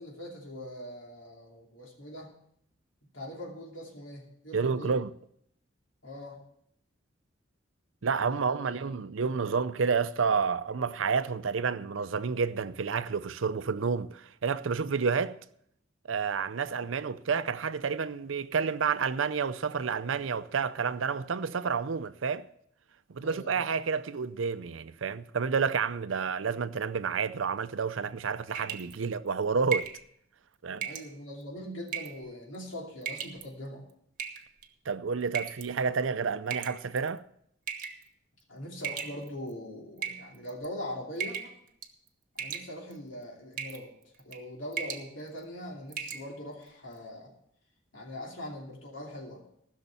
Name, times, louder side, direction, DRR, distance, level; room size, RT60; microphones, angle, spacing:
voice 1, 0.0-2.3 3.0-5.0 6.0-6.4 8.0-8.9 9.2-9.4 23.2-23.5 30.8-33.8 38.5-41.5 42.3-43.9 44.2-47.3 47.9-49.4, left 1 dB, 80° left, 2.8 m, -42 dB
voice 2, 4.5-5.1 8.0-15.4 16.1-22.5 23.1-29.9 30.6-30.9 34.9-37.2, right 5 dB, 80° right, 0.6 m, -30 dB
sound 1, 28.5-29.0 29.7-30.0 30.8-31.1 31.9-32.2 33.0-33.4 34.2-34.7 35.3-35.7 36.5-37.1 37.7-38.0 38.8-39.5 40.0-40.7 41.2-41.6 41.8-42.1 42.4-43.0 43.6-43.8 44.2-44.4 44.7-45.1 45.4-45.5 45.9-46.2, right 7 dB, 40° right, 1.1 m, -36 dB
15.0 x 6.5 x 7.0 m
head